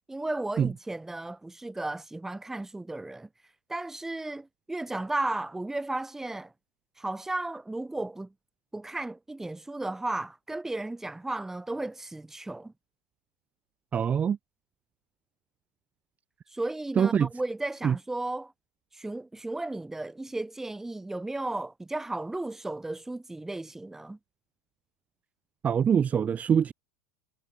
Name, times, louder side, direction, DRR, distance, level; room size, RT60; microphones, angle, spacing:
voice 1, 0.1-3.3 3.7-6.5 7.0-8.3 8.7-12.7 16.5-18.5 18.9-24.2, right 2 dB, 5° right, 1.5 m, -34 dB
voice 2, 13.9-14.4 17.0-17.3 17.8-18.0 25.6-26.7, right 7 dB, 25° right, 1.0 m, -24 dB
supercardioid pair, 115°, 6 cm